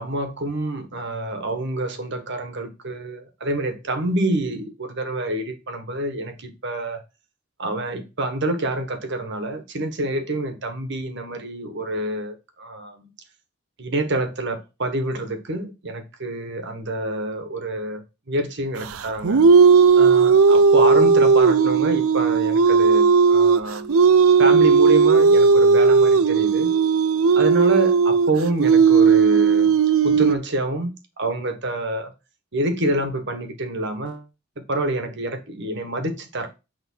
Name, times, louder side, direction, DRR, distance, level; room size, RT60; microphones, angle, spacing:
voice 1, 0.0-7.0 7.6-13.1 13.8-19.5 20.0-23.9 24.4-26.7 27.3-29.7 30.0-32.1 32.5-34.2 34.6-36.5, right 2 dB, 60° right, 1.5 m, -27 dB
sound 1, 19.0-30.4, right 5 dB, 90° right, 0.6 m, -15 dB
8.5 x 3.6 x 5.5 m
head